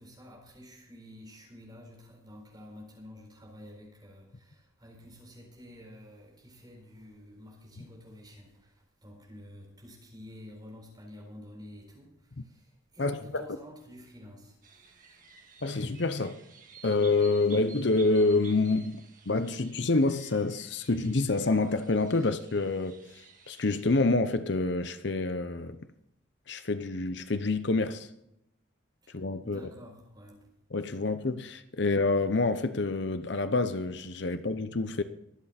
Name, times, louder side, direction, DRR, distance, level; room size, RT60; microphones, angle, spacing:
voice 1, 0.0-14.6 29.0-30.5, left 1 dB, 20° right, 4.3 m, -50 dB
voice 2, 13.0-13.4 15.6-16.4 16.8-25.8 26.5-28.1 29.1-29.6 30.7-35.0, left 3 dB, 60° left, 0.8 m, -27 dB
sound 1, 14.6-24.0, right 5 dB, 40° right, 1.9 m, -53 dB
23.0 x 8.3 x 4.3 m
head